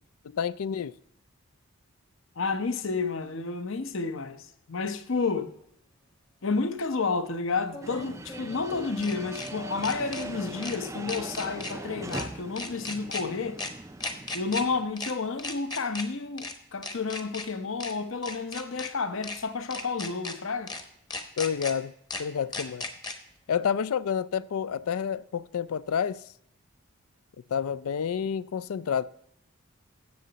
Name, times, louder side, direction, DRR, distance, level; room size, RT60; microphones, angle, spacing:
voice 1, 0.2-1.0 21.4-21.9 22.2-22.9 23.5-26.2 27.5-29.0, left 7 dB, 80° left, 0.4 m, -29 dB
voice 2, 2.4-5.5 6.4-13.6 14.3-20.7, left 4 dB, 60° left, 0.8 m, -31 dB
sound 1, 5.2-5.3 7.7-9.5 9.8-10.2 10.6-10.8 11.1-11.7 12.1-12.2 12.6-13.2 13.6-13.7 14.0-14.6 15.0-15.1 15.4-16.0 16.4-16.5 16.8-17.4 17.8-17.9 18.2-18.9 19.2-19.4 19.7-20.3 20.7-20.8 21.1-21.7 22.1-22.2 22.5-23.1, left 3 dB, 20° left, 0.9 m, -36 dB
sound 2, 7.8-14.9, right 2 dB, 15° right, 0.3 m, -40 dB
15.5 x 6.7 x 4.0 m
head